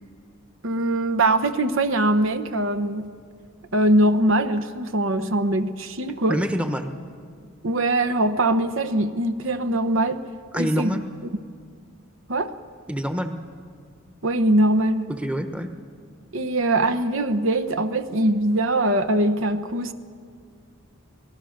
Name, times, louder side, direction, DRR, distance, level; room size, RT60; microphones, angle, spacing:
voice 1, 0.6-3.1 3.7-6.4 7.6-10.2 10.6-11.0 12.3-12.5 14.2-15.1 16.3-19.9, right 1 dB, 65° right, 10 dB, 0.9 m, -22 dB
voice 2, 6.3-6.9 10.5-11.0 12.9-13.3 15.2-15.7, equal, 5° right, 7 dB, 1.0 m, -26 dB
25.5 x 19.0 x 6.5 m, 2.1 s
head